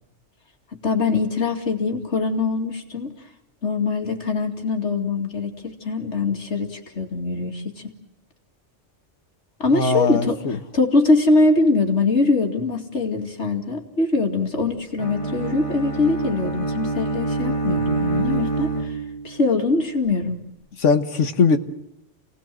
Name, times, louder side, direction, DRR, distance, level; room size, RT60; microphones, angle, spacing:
voice 1, 0.7-3.1 3.6-7.7 9.6-10.4 10.7-19.0 19.2-20.4, left 3 dB, 70° left, 4 dB, 2.8 m, -22 dB
voice 2, 9.7-10.6 20.8-21.6, left 5 dB, 90° left, 7 dB, 1.6 m, -20 dB
Bowed string instrument, 15.0-19.4, right 3 dB, 25° left, 1.8 m, -26 dB
28.0 x 18.5 x 7.6 m, 0.89 s
omnidirectional pair, 1.2 m